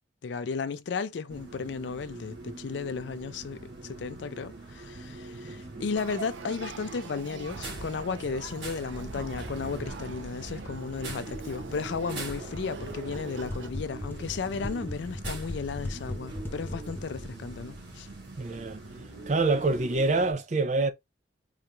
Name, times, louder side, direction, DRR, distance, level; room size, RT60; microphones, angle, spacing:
voice 1, 0.2-18.1, left 5 dB, 70° left, 0.4 m, -34 dB
sound 1, 1.3-20.3, right 2 dB, 65° right, 1.4 m, -42 dB
voice 2, 5.4-5.8 18.4-18.8 19.3-20.9, right 3 dB, 40° right, 0.5 m, -26 dB
Male speech man speaking / Child speech kid speaking / Conversation, 5.9-13.7, right 4 dB, 85° right, 0.6 m, -45 dB
sound 2, 9.9-18.5, left 1 dB, 10° left, 0.5 m, -41 dB
3.8 x 3.0 x 2.2 m
head